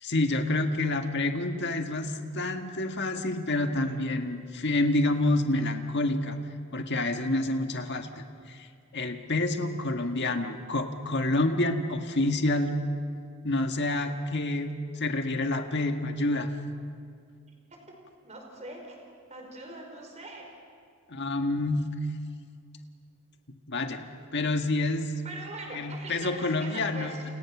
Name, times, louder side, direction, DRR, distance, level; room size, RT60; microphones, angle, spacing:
voice 1, 0.0-6.4 6.7-8.6 8.9-12.7 13.4-14.7 15.0-16.5 21.1-21.9 23.5-24.0 24.3-25.2 25.7-27.1, left 2 dB, 50° left, 5 dB, 1.8 m, -28 dB
voice 2, 18.2-19.0 19.3-20.5 25.2-27.3, right 2 dB, 30° right, 2 dB, 4.9 m, -42 dB
29.5 x 29.5 x 6.1 m, 2.2 s
head